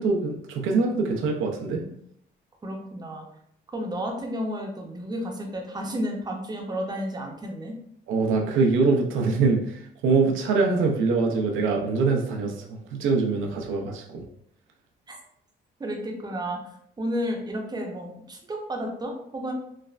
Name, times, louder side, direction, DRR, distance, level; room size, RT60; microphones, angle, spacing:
voice 1, 0.0-1.8 8.1-14.2, right 4 dB, 85° right, 1 dB, 0.5 m, -24 dB
voice 2, 2.6-3.3 3.7-7.8 15.1-15.2 15.8-16.6 17.0-19.5, equal, 20° right, 2 dB, 0.6 m, -32 dB
3.2 x 2.1 x 2.4 m, 0.70 s
cardioid pair, 90°, 20 cm